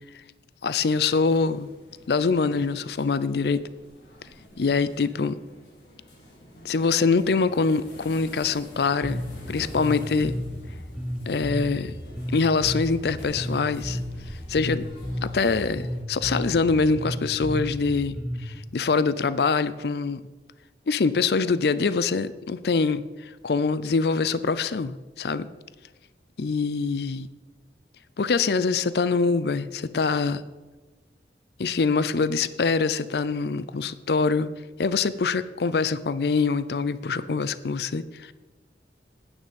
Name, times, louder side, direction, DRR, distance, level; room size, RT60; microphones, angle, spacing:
voice 1, 0.6-1.7 2.1-3.6 4.6-5.4 6.6-9.2 9.5-10.3 11.3-11.9 12.3-14.0 14.5-14.8 15.2-20.2 20.9-25.5 26.4-27.3 28.2-30.4 31.6-34.5 34.8-38.3, left 4 dB, 65° left, 15 dB, 0.5 m, -24 dB
sound 1, 1.2-16.0, equal, 85° left, 2.9 m, -47 dB
Bass guitar, 9.0-18.6, equal, ahead, 1.2 m, -33 dB
9.7 x 9.1 x 5.3 m, 1.2 s
head